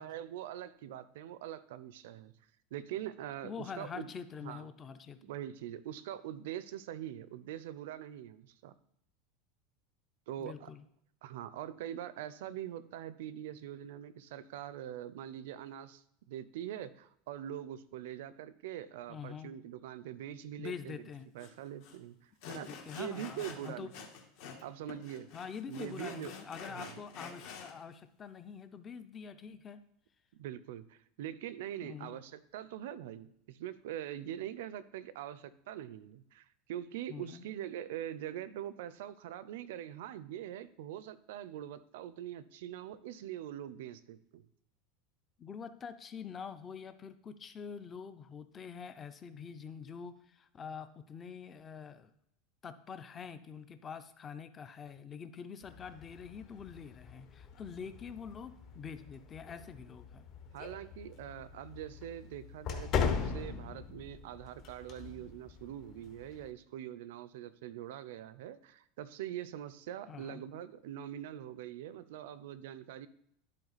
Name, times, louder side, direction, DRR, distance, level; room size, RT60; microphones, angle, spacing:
voice 1, 0.0-2.3 2.7-4.1 4.4-4.7 5.2-8.7 10.3-10.7 11.2-21.0 21.3-23.9 24.6-25.3 25.7-26.3 26.7-27.0 30.3-44.4 60.5-73.1, right 11 dB, 80° right, 16 dB, 0.5 m, -43 dB
voice 2, 3.4-5.2 10.4-10.8 19.1-19.5 20.6-21.3 22.4-23.9 25.3-29.8 31.8-32.2 37.1-37.5 45.4-52.1 52.6-60.3 70.1-70.4, left 6 dB, 20° left, 11 dB, 0.5 m, -45 dB
Sawing, 21.4-21.5 21.8-22.0 22.4-24.6 24.9-27.7, left 6 dB, 60° left, 1.5 m, -48 dB
sound 1, 55.6-66.5, left 6 dB, 40° left, 0.9 m, -40 dB
11.0 x 4.3 x 4.1 m, 0.74 s
supercardioid pair, 150°, 0 cm